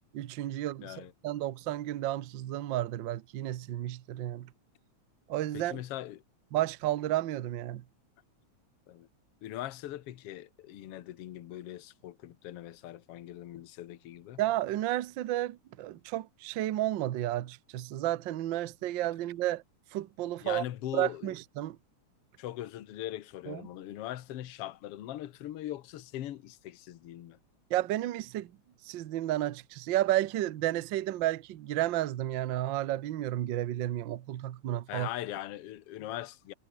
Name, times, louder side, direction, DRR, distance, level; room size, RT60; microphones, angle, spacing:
voice 1, 0.1-4.5 5.3-5.8 6.5-7.8 14.4-19.6 19.9-20.6 20.9-21.8 23.5-23.6 27.7-28.5 28.8-35.1, right 14 dB, 75° right, 1.0 m, -32 dB
voice 2, 0.8-1.1 5.5-6.2 8.9-9.1 9.4-14.4 20.4-21.3 22.4-27.4 34.9-36.5, left 13 dB, 60° left, 1.9 m, -40 dB
omnidirectional pair, 3.3 m